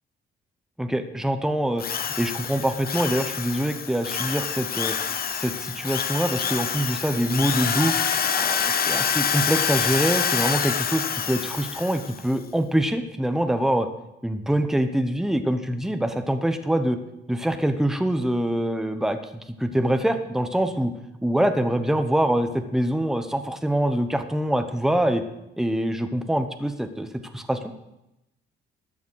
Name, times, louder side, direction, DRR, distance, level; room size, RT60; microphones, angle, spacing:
voice 1, 0.8-1.8 2.2-4.9 5.3-7.9 8.3-13.9 14.2-17.0 17.3-19.2 19.6-20.9 21.2-25.2 25.6-27.1 27.3-27.6, right 1 dB, ahead, 8 dB, 0.9 m, -24 dB
Drill, 1.8-12.2, left 7 dB, 50° left, 0.9 m, -26 dB
13.0 x 7.1 x 6.4 m, 0.91 s
cardioid pair, 90°, 20 cm